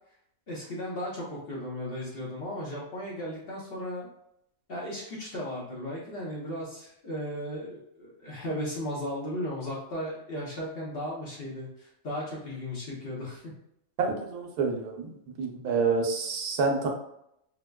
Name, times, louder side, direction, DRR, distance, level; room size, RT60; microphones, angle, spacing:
voice 1, 0.5-4.1 4.7-13.4, left 1 dB, 45° left, -5 dB, 0.9 m, -36 dB
voice 2, 14.0-15.1 15.4-16.9, right 4 dB, 90° right, 1 dB, 1.2 m, -28 dB
4.7 x 2.1 x 2.2 m, 0.77 s
omnidirectional pair, 1.5 m